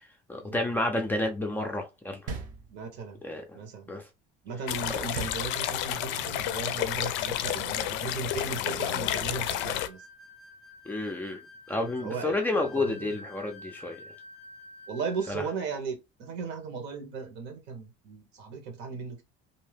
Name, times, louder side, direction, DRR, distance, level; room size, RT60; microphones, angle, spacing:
voice 1, 0.3-2.3 3.2-3.6 3.9-4.1 4.9-5.1 8.7-8.8 10.9-11.4 11.7-14.0 15.3-15.4, left 2 dB, 10° left, 0.5 m, -30 dB
sound 1, 2.3-3.2 5.1-6.1, right 4 dB, 45° right, 0.7 m, -39 dB
voice 2, 2.7-3.2 3.5-3.9 4.4-10.0 11.8-13.2 14.9-19.3, right 5 dB, 65° right, 1.2 m, -37 dB
sound 2, 4.7-9.9, left 12 dB, 70° left, 0.4 m, -31 dB
sound 3, 9.3-15.4, left 2 dB, 85° right, 1.2 m, -49 dB
2.7 x 2.1 x 3.3 m
cardioid pair, 145°, 19 cm